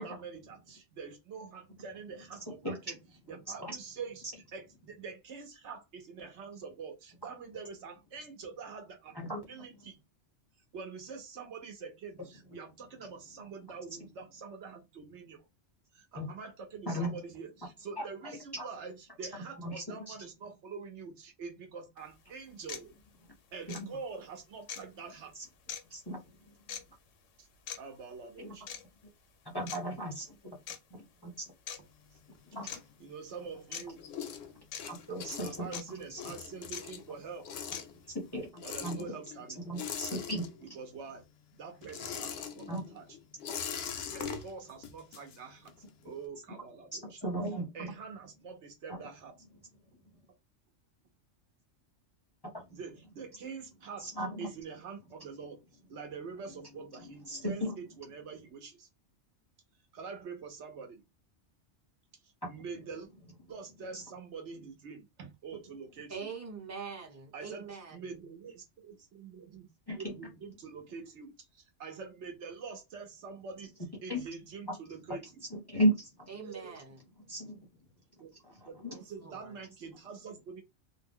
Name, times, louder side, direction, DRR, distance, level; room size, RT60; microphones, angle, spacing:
voice 1, 0.0-3.0 3.3-9.2 9.5-10.0 10.7-15.5 15.9-22.9 23.5-25.3 27.4-27.5 27.7-28.7 33.0-34.0 35.3-37.5 38.6-39.7 40.6-41.2 41.5-43.1 44.1-45.7 46.0-47.2 47.7-49.3 52.7-54.1 54.4-55.6 55.9-58.9 59.9-61.0 62.2-63.1 63.5-66.2 67.3-69.7 70.0-73.7 74.0-75.4 76.4-76.8 78.2-78.3 78.7-80.6, right 5 dB, 70° right, 1.0 m, -45 dB
voice 2, 16.9-17.2 18.0-18.1 18.5-18.6 19.3-20.1 23.7-23.9 25.9-26.5 28.4-28.5 29.5-30.6 30.9-31.4 32.5-32.8 34.9-35.8 36.1-36.2 38.1-39.1 39.6-40.5 42.7-42.9 47.0-47.9 48.9-49.0 52.4-52.8 54.0-54.5 57.3-57.7 62.4-62.5 63.9-64.0 69.9-70.1 74.1-74.2 75.5-76.3 77.3-77.6 78.6-78.9, equal, 25° left, 0.6 m, -35 dB
sound 1, 22.0-22.1 22.7-22.9 23.7-23.8 24.7-24.8 25.7-25.8 26.7-26.8 27.7-27.8 28.7-28.8 29.7-29.8 30.7-30.8 31.7-31.8 32.7-32.8 33.7-33.8 34.7-34.8 35.7-35.8 36.7-36.8 37.7-37.8, left 8 dB, 80° left, 1.0 m, -40 dB
sound 2, 31.8-33.4 33.7-40.9 41.2-45.9, left 7 dB, 65° left, 0.7 m, -42 dB
voice 3, 66.1-68.0 76.3-77.0 78.9-79.6, right 5 dB, 15° right, 0.7 m, -44 dB
2.5 x 2.1 x 3.5 m
omnidirectional pair, 1.3 m